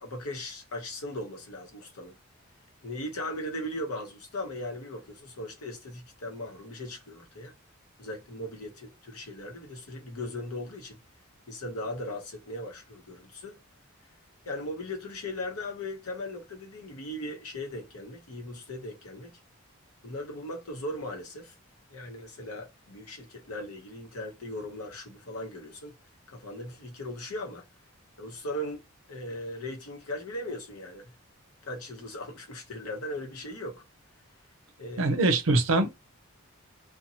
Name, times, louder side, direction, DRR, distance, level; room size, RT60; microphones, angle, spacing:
voice 1, 0.0-2.2 2.8-7.5 8.0-11.0 11.5-13.6 14.4-19.4 20.0-21.5 21.9-25.9 26.3-27.6 28.2-28.8 29.1-31.1 31.6-33.8 34.8-35.2, left 1 dB, 85° left, 0.8 m, -38 dB
voice 2, 35.0-35.9, right 2 dB, 60° right, 0.5 m, -23 dB
2.7 x 2.1 x 2.7 m
head